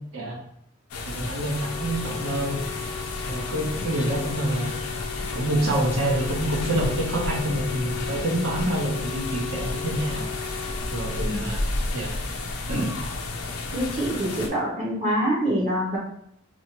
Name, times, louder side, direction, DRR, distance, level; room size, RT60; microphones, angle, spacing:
sound 1, 0.9-14.5, left 3 dB, 85° left, 0.5 m, -32 dB
voice 1, 1.0-2.6 3.3-4.7 5.3-10.3 10.9-11.6 11.9-12.1 12.7-12.9, right 1 dB, 75° right, -2 dB, 0.9 m, -27 dB
sound 2, 1.5-11.2, left 6 dB, 25° left, 0.5 m, -36 dB
voice 2, 13.7-16.0, equal, 35° right, -5 dB, 0.8 m, -25 dB
4.3 x 2.2 x 2.9 m, 0.72 s
head